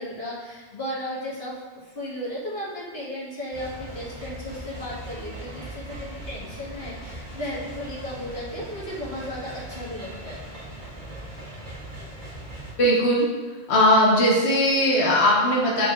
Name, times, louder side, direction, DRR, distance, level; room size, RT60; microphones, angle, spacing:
voice 1, 0.0-1.5 1.8-10.4, equal, 65° left, -7 dB, 1.9 m, -35 dB
sound 1, 3.5-12.7, right 1 dB, 50° right, 1.2 m, -39 dB
voice 2, 12.8-13.3 13.7-15.9, equal, 85° left, -3 dB, 1.2 m, -19 dB
8.6 x 4.6 x 2.5 m, 1.4 s
omnidirectional pair, 1.1 m